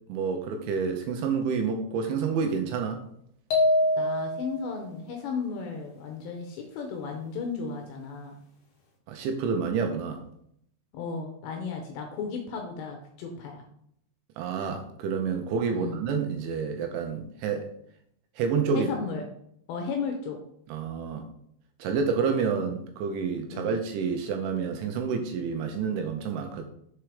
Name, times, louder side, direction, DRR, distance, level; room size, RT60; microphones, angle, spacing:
voice 1, 0.1-3.0 9.1-10.2 14.4-17.7 18.4-18.9 20.7-21.3 21.8-26.6, right 5 dB, 80° right, 5 dB, 2.9 m, -29 dB
sound 1, 3.5-4.7, left 1 dB, 65° left, 1.8 m, -24 dB
voice 2, 4.0-8.3 10.9-13.6 15.7-16.0 18.7-19.3 19.7-20.4 23.5-23.8, left 5 dB, 80° left, 3 dB, 2.7 m, -34 dB
7.0 x 4.5 x 4.9 m, 0.70 s
omnidirectional pair, 5.7 m